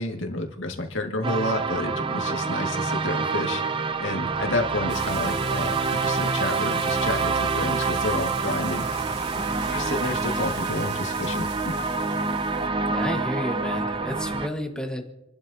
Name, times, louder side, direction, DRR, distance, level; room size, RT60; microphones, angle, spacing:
voice 1, 0.0-3.6 4.0-8.9 9.7-11.7, left 2 dB, 75° left, 2 dB, 2.0 m, -30 dB
sound 1, 1.2-14.5, right 4 dB, 25° right, 0.6 m, -27 dB
sound 2, 4.9-12.7, right 6 dB, 55° right, 1.4 m, -42 dB
voice 2, 12.9-15.0, left 1 dB, 5° left, 3 dB, 1.5 m, -31 dB
28.0 x 12.0 x 2.8 m, 0.91 s
head